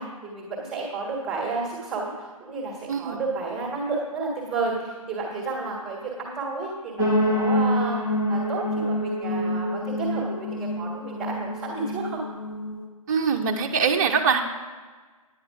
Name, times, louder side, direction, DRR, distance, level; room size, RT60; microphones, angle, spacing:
voice 1, 0.0-8.0 8.3-12.2, right 3 dB, 5° right, -4 dB, 1.5 m, -31 dB
voice 2, 2.9-3.2 13.1-14.4, right 5 dB, 30° right, 0 dB, 0.7 m, -23 dB
sound 1, 7.0-12.9, equal, 15° left, 1.2 m, -26 dB
9.4 x 8.7 x 5.8 m, 1.4 s
figure-of-eight pair, 145°, 19 cm